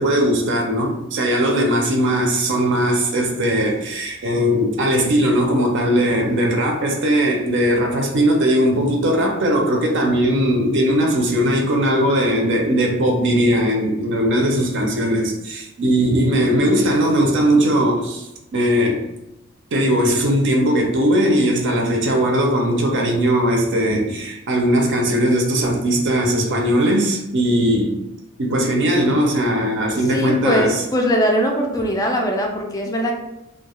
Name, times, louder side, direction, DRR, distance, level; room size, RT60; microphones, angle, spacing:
voice 1, 0.0-19.0 19.7-27.9 28.4-30.8, equal, 55° right, 1 dB, 0.5 m, -19 dB
voice 2, 30.1-33.1, equal, 15° left, 1 dB, 0.4 m, -20 dB
2.3 x 2.2 x 2.9 m, 0.91 s
head